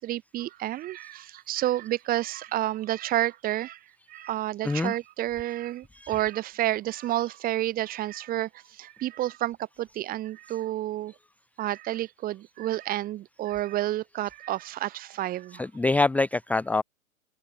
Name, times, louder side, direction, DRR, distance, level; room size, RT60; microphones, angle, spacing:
voice 1, 0.0-3.8 4.1-11.1 11.6-15.7, right 14 dB, 20° right, 2.5 m, -30 dB
voice 2, 15.5-16.8, left 3 dB, 5° left, 1.2 m, -25 dB
open air
figure-of-eight pair, 120°, 42 cm